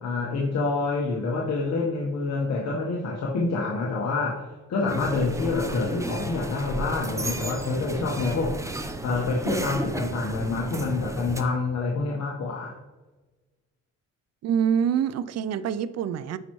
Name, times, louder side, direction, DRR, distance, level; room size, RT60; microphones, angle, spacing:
voice 1, 0.0-8.7 9.0-12.8, left 3 dB, 60° left, -2 dB, 1.2 m, -27 dB
sound 1, 4.9-11.4, right 1 dB, 10° right, 0.7 m, -33 dB
voice 2, 14.4-16.4, right 8 dB, 55° right, 15 dB, 0.5 m, -25 dB
9.3 x 5.6 x 3.1 m, 1.2 s
cardioid pair, 90°, 30 cm